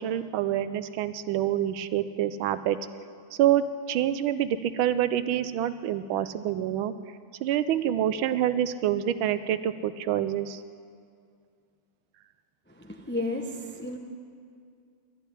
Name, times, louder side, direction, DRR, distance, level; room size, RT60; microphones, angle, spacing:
voice 1, 0.0-2.8 3.4-6.9 7.4-10.6, right 11 dB, 85° right, 13 dB, 1.5 m, -27 dB
voice 2, 12.7-14.0, left 2 dB, 15° left, 3 dB, 0.4 m, -33 dB
11.5 x 11.5 x 10.0 m, 2.3 s
omnidirectional pair, 2.2 m